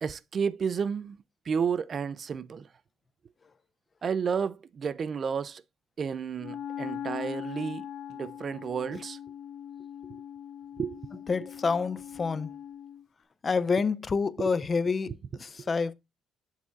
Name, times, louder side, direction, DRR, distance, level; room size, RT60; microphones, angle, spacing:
voice 1, 0.0-1.2 1.5-2.6 4.0-5.6 6.0-9.2 10.8-11.0 14.4-14.5, right 6 dB, 35° right, 0.3 m, -31 dB
Wind instrument woodwind instrument, 6.4-13.0, left 9 dB, 80° left, 1.2 m, -41 dB
voice 2, 11.3-12.5 13.4-15.1 15.4-15.9, left 4 dB, 25° left, 0.5 m, -28 dB
7.6 x 7.3 x 2.4 m
cardioid pair, 140°, 0 cm